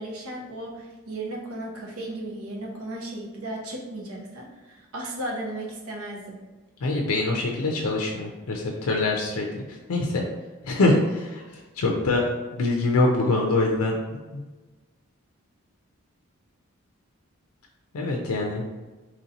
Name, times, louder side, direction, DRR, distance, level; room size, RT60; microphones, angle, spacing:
voice 1, 0.0-6.4, right 1 dB, 80° right, -1 dB, 0.9 m, -35 dB
voice 2, 6.8-10.2 10.6-11.4 11.8-12.2 12.5-13.9 14.3-14.4 17.9-18.6, left 2 dB, 80° left, 0 dB, 0.5 m, -24 dB
3.0 x 2.7 x 4.0 m, 1.2 s
head